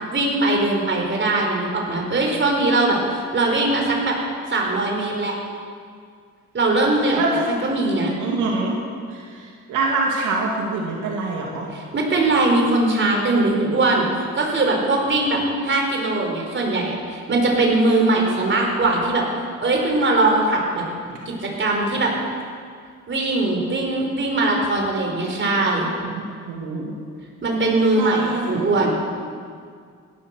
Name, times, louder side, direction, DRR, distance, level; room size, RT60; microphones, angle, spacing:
voice 1, 0.1-4.2 4.5-5.3 6.5-8.1 11.7-19.3 19.6-20.8 21.3-22.1 23.1-25.9 27.4-29.0, right 2 dB, 40° right, 0 dB, 4.5 m, -21 dB
voice 2, 8.2-8.8 9.1-11.7 21.1-21.2 26.0-26.9 27.9-28.7, right 3 dB, 90° right, -2 dB, 2.8 m, -25 dB
17.0 x 12.0 x 6.7 m, 2.1 s
cardioid pair, 90°, 30 cm